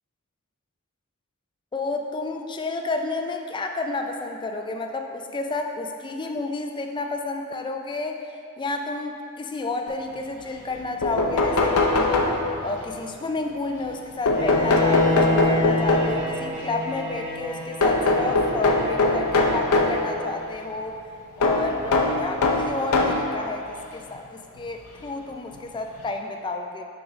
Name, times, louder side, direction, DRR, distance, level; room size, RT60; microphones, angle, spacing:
voice 1, 1.7-8.2 8.6-12.2 12.6-21.0 21.4-26.8, left 3 dB, 20° left, 4 dB, 0.3 m, -30 dB
sound 1, 10.7-10.8 11.0-12.8 14.3-16.3 17.8-20.0 21.4-23.3 24.1-24.2 25.6-25.7 26.0-26.1, left 2 dB, 75° left, 0.6 m, -21 dB
Bowed string instrument, 14.3-20.4, left 1 dB, 10° right, 1.3 m, -29 dB
6.1 x 5.0 x 3.1 m, 2.5 s
head